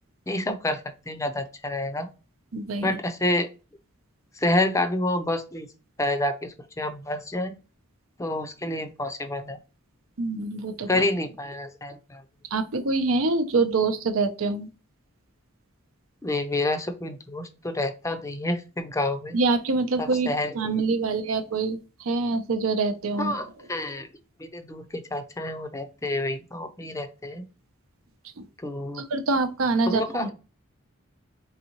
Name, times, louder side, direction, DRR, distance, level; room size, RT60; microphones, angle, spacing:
voice 1, 0.3-2.1 2.8-3.5 4.4-5.7 6.0-7.5 8.2-9.6 10.9-12.2 16.2-19.4 20.0-20.8 23.2-24.1 24.4-27.4 28.6-29.0 29.9-30.3, left 1 dB, 15° left, 0.4 m, -28 dB
voice 2, 2.5-3.0 10.2-11.0 12.5-14.7 19.3-23.5 28.4-28.5 28.9-30.3, right 3 dB, 85° right, 0.6 m, -25 dB
4.0 x 3.6 x 2.9 m
head